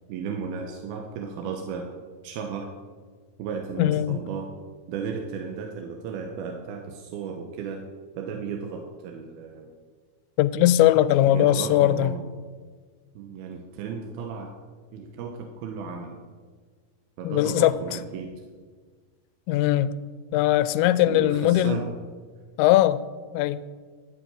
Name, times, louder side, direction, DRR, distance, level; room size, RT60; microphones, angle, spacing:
voice 1, 0.1-1.9 2.2-2.7 3.4-4.5 4.9-7.9 8.2-9.7 11.3-12.2 13.2-14.6 14.9-16.2 17.2-18.4 21.1-21.9, right 6 dB, 70° right, 2.6 m, -34 dB
voice 2, 3.8-4.2 10.4-12.1 17.2-17.7 19.5-19.9 20.3-21.8 22.6-23.0 23.3-23.6, left 13 dB, 90° left, 2.9 m, -20 dB
13.0 x 8.3 x 9.0 m
omnidirectional pair, 5.1 m